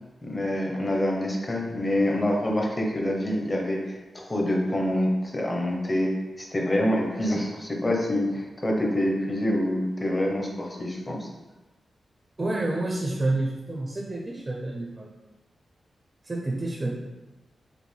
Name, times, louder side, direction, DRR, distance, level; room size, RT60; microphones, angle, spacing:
voice 1, 0.2-6.1 6.4-11.3, left 1 dB, 20° left, 0 dB, 0.7 m, -26 dB
voice 2, 12.4-15.1 16.2-16.9, right 2 dB, 30° right, -1 dB, 0.5 m, -29 dB
5.1 x 2.5 x 3.2 m, 1.1 s
wide cardioid pair, 125°, 0 cm